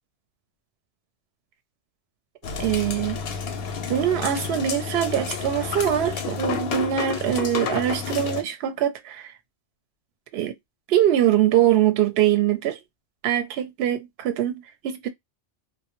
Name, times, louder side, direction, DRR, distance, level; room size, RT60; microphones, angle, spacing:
sound 1, 2.4-8.4, left 6 dB, 65° left, 0.7 m, -30 dB
voice 1, 2.6-3.2 3.9-9.3 10.3-10.5 10.9-12.8 13.2-15.1, right 11 dB, 70° right, 0.8 m, -23 dB
2.1 x 2.0 x 2.9 m
omnidirectional pair, 1.2 m